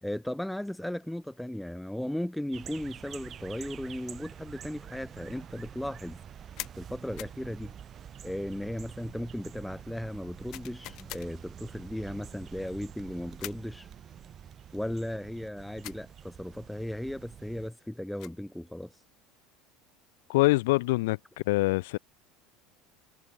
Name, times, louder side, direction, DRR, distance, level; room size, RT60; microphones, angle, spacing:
voice 1, 0.0-6.2 6.8-7.8 8.2-13.9 14.7-18.9, left 1 dB, 5° left, 0.6 m, -36 dB
sound 1, 2.5-17.7, right 9 dB, 30° right, 2.2 m, -47 dB
sound 2, 6.6-6.8 7.2-7.4 10.5-11.3 13.4-13.7 15.8-16.1 17.9-18.4, left 18 dB, 55° left, 1.7 m, -42 dB
voice 2, 20.3-21.2 21.5-22.0, left 21 dB, 85° left, 0.5 m, -24 dB
supercardioid pair, 140°, 0 cm